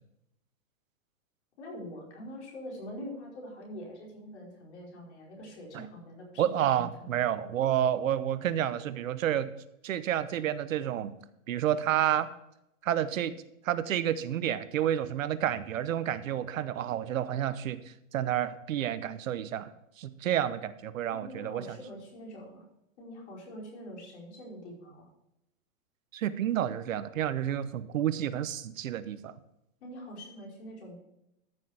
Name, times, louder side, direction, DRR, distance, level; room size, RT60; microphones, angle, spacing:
voice 1, 1.6-7.2 21.1-22.6 23.0-25.1 29.8-31.0, equal, 55° left, -2 dB, 5.0 m, -44 dB
voice 2, 6.4-9.5 9.8-11.1 11.5-12.3 12.8-13.3 13.6-19.7 20.0-21.8 26.1-29.3, right 11 dB, 70° right, 13 dB, 1.0 m, -30 dB
14.0 x 6.6 x 5.0 m, 0.85 s
supercardioid pair, 175°, 40 cm